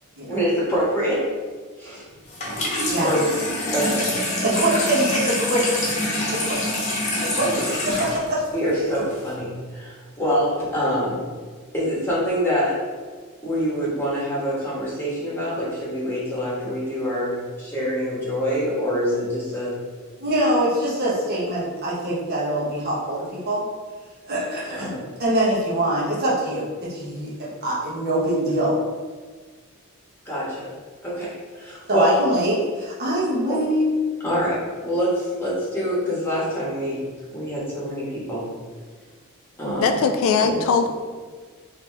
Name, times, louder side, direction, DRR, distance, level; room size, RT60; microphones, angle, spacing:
voice 1, 0.3-1.3 1.8-2.0 3.0-3.2 3.7-4.1 8.5-11.2 11.7-12.8 13.4-19.8 24.7-25.0 30.2-30.7 31.0-32.2 33.5-33.6 34.2-37.0 37.3-38.4 39.6-39.9 40.4-40.6, equal, 10° left, -8 dB, 1.4 m, -25 dB
Water tap faucet / Sink (filling or washing), 2.3-9.3, left 1 dB, 35° left, 1.0 m, -26 dB
voice 2, 4.4-5.6 6.3-6.6 7.2-8.4 20.2-23.6 24.3-28.8 31.9-33.9, right 1 dB, 50° right, -6 dB, 1.1 m, -24 dB
voice 3, 39.8-40.9, left 5 dB, 65° left, 6 dB, 0.3 m, -20 dB
4.1 x 2.8 x 3.3 m, 1.5 s
head